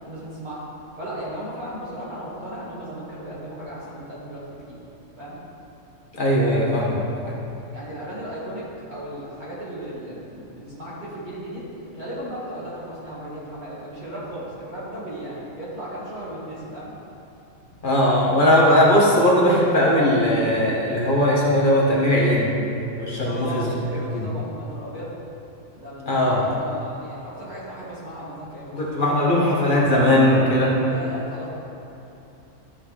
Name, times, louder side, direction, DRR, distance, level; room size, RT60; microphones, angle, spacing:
voice 1, 0.0-0.6 1.0-4.8 5.2-5.4 7.7-11.7 11.9-16.9 23.2-25.1 25.8-28.7 30.8-31.5, equal, 35° right, -9 dB, 2.1 m, -35 dB
voice 2, 6.2-7.3 17.8-22.5 23.0-23.7 24.1-24.3 26.1-26.4 28.7-30.7, left 1 dB, 40° left, -4 dB, 1.6 m, -19 dB
13.0 x 5.5 x 4.1 m, 2.9 s
omnidirectional pair, 1.3 m